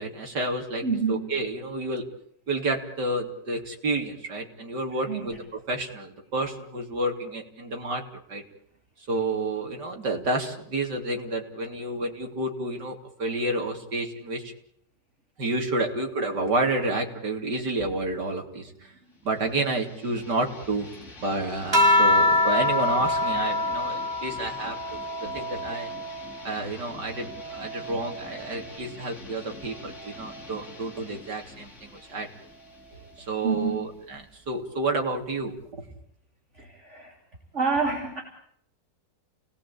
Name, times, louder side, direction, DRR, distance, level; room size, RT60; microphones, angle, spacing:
voice 1, 0.0-0.8 1.1-2.0 2.5-5.4 5.7-8.0 8.3-8.4 9.1-14.5 15.4-18.9 19.2-20.9 21.2-25.9 26.4-32.3 33.2-35.5, right 2 dB, 65° right, 3 dB, 4.0 m, -30 dB
voice 2, 0.8-1.3 5.0-5.3 33.4-33.8 36.5-37.1 37.5-38.2, right 4 dB, 40° right, 2 dB, 3.5 m, -28 dB
sound 1, 19.1-34.5, left 3 dB, 40° left, 3.3 m, -46 dB
sound 2, 21.7-26.5 27.0-28.7 29.9-30.4, left 2 dB, 25° right, 1.8 m, -26 dB
30.0 x 19.0 x 8.7 m, 0.71 s
omnidirectional pair, 2.0 m